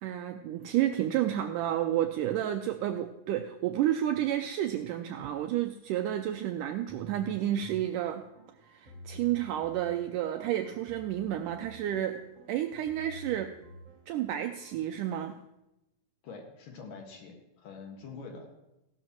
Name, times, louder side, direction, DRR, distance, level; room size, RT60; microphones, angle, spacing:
voice 1, 0.0-8.2 8.6-12.2 12.5-13.5 14.1-15.4, right 12 dB, 85° right, 6 dB, 1.9 m, -31 dB
sound 1, 6.9-14.8, right 1 dB, 55° right, 0.8 m, -50 dB
voice 2, 16.2-18.5, left 4 dB, 70° left, 2 dB, 3.3 m, -45 dB
16.0 x 12.0 x 3.0 m, 0.91 s
omnidirectional pair, 4.2 m